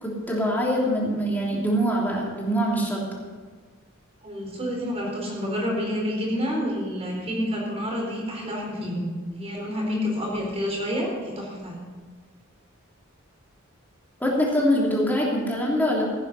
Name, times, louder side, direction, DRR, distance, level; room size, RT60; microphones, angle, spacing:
voice 1, 0.0-3.0 9.8-10.1 14.2-16.0, equal, 10° left, -4 dB, 3.1 m, -24 dB
voice 2, 4.2-11.8, equal, 30° right, -2 dB, 4.4 m, -29 dB
16.0 x 9.7 x 5.6 m, 1.5 s
head